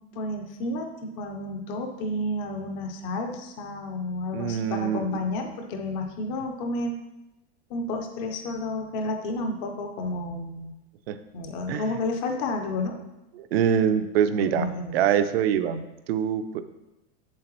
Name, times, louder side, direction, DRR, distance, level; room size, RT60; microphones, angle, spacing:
voice 1, 0.0-7.0 7.7-10.7 11.3-13.0 14.3-15.0, left 2 dB, 15° left, 4 dB, 0.3 m, -31 dB
voice 2, 4.3-5.2 11.1-11.2 11.7-11.8 13.4-14.7 14.9-16.6, right 8 dB, 70° right, 11 dB, 0.6 m, -24 dB
7.8 x 7.4 x 3.0 m, 0.95 s
supercardioid pair, 175°, 31 cm